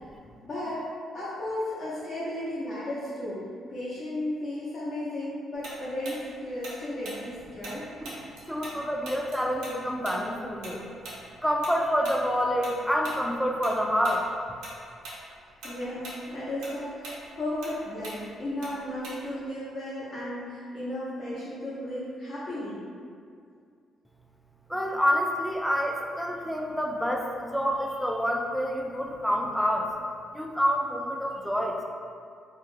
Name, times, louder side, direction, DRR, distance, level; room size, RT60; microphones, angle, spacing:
voice 1, 0.4-0.9 1.1-8.0 15.6-22.8, left 1 dB, 55° left, -11 dB, 0.7 m, -34 dB
Tick-tock, 5.6-8.8 9.0-13.8 14.0-14.2 14.6-15.2 15.5-19.5, right 1 dB, 90° right, 0.6 m, -42 dB
voice 2, 8.2-10.8 11.4-14.3 24.7-29.9 30.3-31.8, equal, ahead, 0 dB, 0.3 m, -27 dB
2.3 x 2.1 x 3.1 m, 2.3 s
cardioid pair, 90°, 0 cm